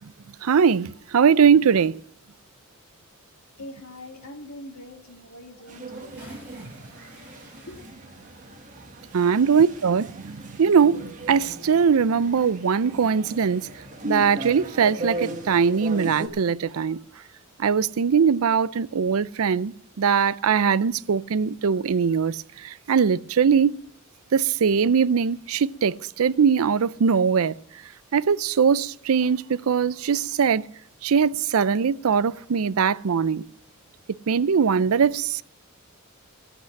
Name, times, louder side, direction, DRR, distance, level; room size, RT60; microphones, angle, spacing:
voice 1, 0.4-1.9 9.1-13.7 14.0-17.0 17.6-23.7 24.3-27.5 28.1-30.6 31.0-33.4 34.3-35.4, right 6 dB, 80° right, 0.5 m, -21 dB
voice 2, 3.6-6.2 7.6-7.8, left 1 dB, 75° left, 2.3 m, -42 dB
sound 1, 5.7-16.3, right 1 dB, 35° right, 1.7 m, -37 dB
Bathtub (filling or washing) / Splash splatter, 5.9-10.8 11.0-11.1, equal, 10° right, 7.6 m, -53 dB
15.0 x 8.0 x 7.4 m
head